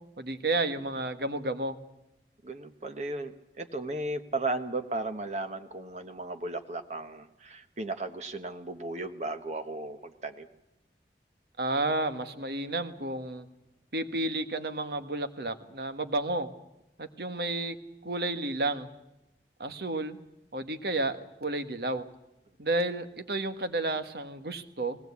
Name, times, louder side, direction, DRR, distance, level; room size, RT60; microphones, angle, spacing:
voice 1, 0.2-1.8 11.6-13.5 13.9-16.5 17.0-17.8 18.0-18.9 19.6-20.2 20.5-22.1 22.6-25.0, right 2 dB, 65° right, 9 dB, 1.5 m, -31 dB
voice 2, 2.4-10.5, right 2 dB, 40° right, 8 dB, 1.1 m, -35 dB
20.0 x 18.0 x 8.3 m, 0.92 s
head